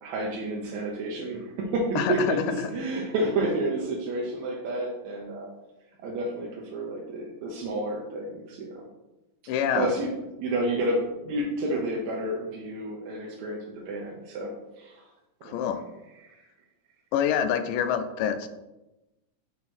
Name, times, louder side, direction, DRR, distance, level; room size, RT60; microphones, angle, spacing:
voice 1, 0.0-5.5 6.0-8.8 9.7-10.1 10.4-14.5 14.8-15.0 15.4-15.6 16.2-16.4, right 1 dB, 70° right, -2 dB, 1.9 m, -30 dB
voice 2, 2.0-2.3 9.5-9.9 15.4-15.8 17.1-18.5, left 8 dB, 90° left, 9 dB, 2.3 m, -26 dB
6.3 x 3.7 x 6.0 m, 1.0 s
omnidirectional pair, 3.7 m